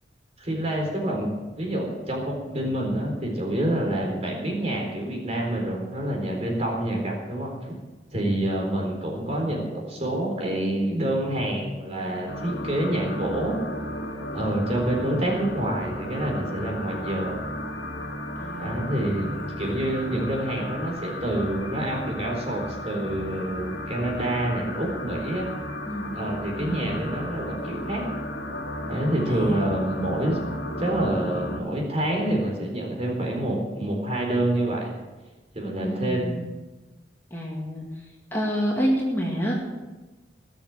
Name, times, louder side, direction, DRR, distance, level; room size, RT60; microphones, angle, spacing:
voice 1, 0.4-7.7 8.1-13.6 14.3-17.4 18.6-19.3 19.6-25.5 26.1-28.1 28.9-30.4 30.8-34.9 35.5-36.2, right 1 dB, 35° right, 0 dB, 4.0 m, -27 dB
sound 1, 12.3-31.6, left 1 dB, 75° left, 2.2 m, -34 dB
voice 2, 18.4-19.8 20.0-20.2 25.9-26.1 26.6-27.0 29.3-29.7 30.0-30.1 35.8-36.5 37.3-37.9 38.3-39.5, equal, 10° left, -3 dB, 2.2 m, -29 dB
19.5 x 7.2 x 7.8 m, 1.2 s
head